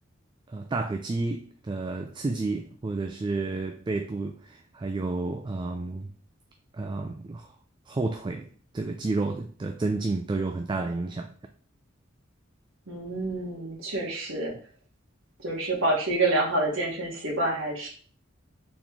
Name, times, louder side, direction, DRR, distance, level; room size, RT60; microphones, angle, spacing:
voice 1, 0.5-6.1 6.7-7.5 7.9-8.5 8.7-11.3, right 3 dB, 25° right, 0.3 m, -30 dB
voice 2, 12.9-14.5 15.4-17.9, right 2 dB, 80° right, 1.5 m, -27 dB
4.1 x 3.0 x 3.6 m
head